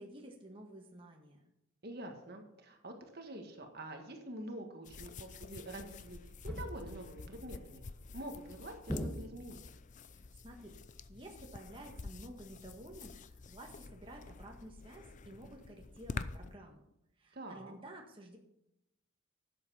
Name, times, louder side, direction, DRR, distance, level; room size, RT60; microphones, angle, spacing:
voice 1, 0.0-1.4 10.1-10.7 11.1-16.8 17.2-18.4, right 1 dB, 25° right, 1 dB, 1.6 m, -52 dB
voice 2, 1.8-7.8 8.1-9.6 17.3-17.7, right 1 dB, 50° right, 4 dB, 1.6 m, -46 dB
sound 1, 4.8-16.6, left 4 dB, 35° left, 0.5 m, -48 dB
sound 2, 6.5-7.1 8.9-9.7, equal, 5° left, 1.3 m, -40 dB
12.0 x 7.9 x 5.6 m, 0.84 s
head